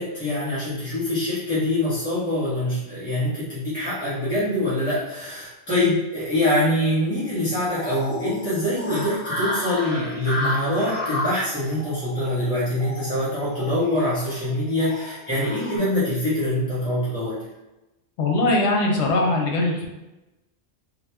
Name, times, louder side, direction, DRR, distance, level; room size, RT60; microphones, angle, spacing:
voice 1, 0.0-17.3, left 1 dB, 10° right, -11 dB, 0.8 m, -24 dB
sound 1, 7.7-15.8, left 1 dB, 40° left, 1.6 m, -32 dB
voice 2, 18.2-19.9, left 2 dB, 80° left, 0 dB, 1.0 m, -21 dB
2.9 x 2.2 x 3.3 m, 1.0 s
omnidirectional pair, 1.1 m